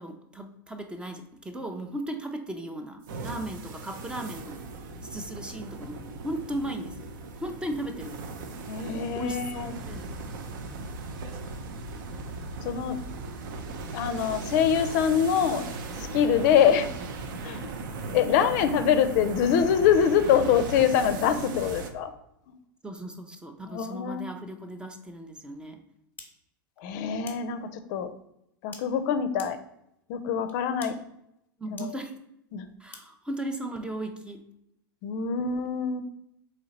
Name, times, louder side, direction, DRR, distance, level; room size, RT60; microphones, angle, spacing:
voice 1, 0.0-4.6 5.0-7.1 7.4-8.2 9.2-10.0 22.8-25.8 31.6-32.2 32.8-34.4, right 1 dB, 10° right, 6 dB, 0.5 m, -36 dB
sound 1, 3.0-21.9, right 3 dB, 65° right, 0.6 m, -38 dB
voice 2, 8.7-9.7 12.6-13.0 13.9-15.6 16.0-16.9 17.4-17.7 18.1-22.1 23.7-24.3 26.8-27.6 27.9-28.1 28.6-29.6 30.1-31.0 31.7-32.0 32.5-32.6 35.0-36.0, left 8 dB, 55° left, 9 dB, 0.4 m, -24 dB
sound 2, 26.2-26.3 27.3-27.4 28.7-28.8 29.4-29.5 30.5-30.6 30.8-30.9 31.8-31.9 32.9-33.0, left 4 dB, 15° left, 0.9 m, -43 dB
3.8 x 3.2 x 4.0 m, 0.79 s
hypercardioid pair, 100°, 12 cm